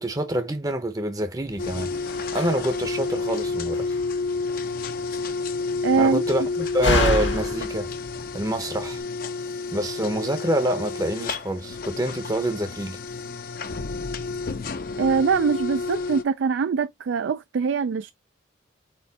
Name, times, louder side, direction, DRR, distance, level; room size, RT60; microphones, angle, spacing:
voice 1, 0.0-1.9 2.3-3.9 6.0-7.9 8.3-9.0 9.7-13.0, right 1 dB, 20° right, 0.7 m, -26 dB
Slam, 1.4-9.0, left 2 dB, 70° left, 1.3 m, -31 dB
sound 1, 1.6-16.2, left 4 dB, 50° left, 0.6 m, -30 dB
voice 2, 5.8-6.2 15.0-18.1, right 5 dB, 75° right, 0.4 m, -23 dB
4.4 x 4.3 x 2.8 m
head